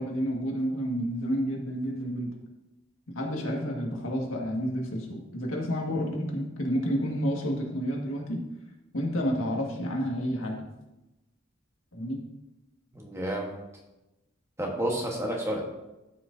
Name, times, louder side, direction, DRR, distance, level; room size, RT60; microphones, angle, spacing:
voice 1, 0.0-2.3 3.2-8.4 8.9-10.6 11.9-12.2, equal, 85° left, 0 dB, 1.8 m, -30 dB
voice 2, 12.9-13.5 14.6-15.6, right 1 dB, 15° right, 0 dB, 1.2 m, -30 dB
13.0 x 6.1 x 2.7 m, 0.98 s
head